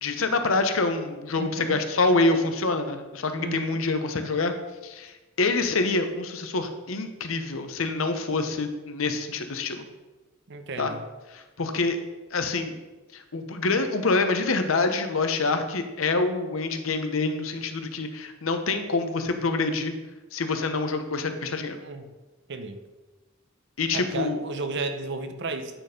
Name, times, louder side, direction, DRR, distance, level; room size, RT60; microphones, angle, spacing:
voice 1, 0.0-4.5 4.8-9.8 10.8-10.9 11.3-12.0 12.3-12.8 13.1-19.9 20.3-21.8 23.8-24.4, left 3 dB, 85° left, 7 dB, 0.8 m, -26 dB
voice 2, 1.4-1.8 3.4-3.8 10.5-11.0 21.8-22.1 22.5-22.8 23.9-25.8, right 3 dB, 60° right, 9 dB, 0.7 m, -33 dB
9.0 x 4.3 x 5.1 m, 1.1 s
head